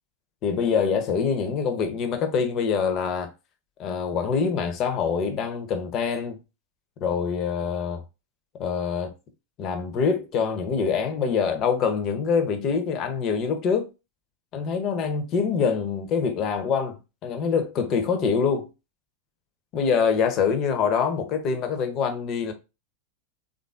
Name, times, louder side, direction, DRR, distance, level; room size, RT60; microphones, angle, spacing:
voice 1, 0.4-3.3 3.8-6.4 7.0-8.0 8.6-9.1 9.6-13.9 14.5-18.7 19.7-22.5, left 6 dB, 35° left, 0.7 m, -25 dB
3.4 x 2.5 x 2.4 m
figure-of-eight pair, 90°, 0 cm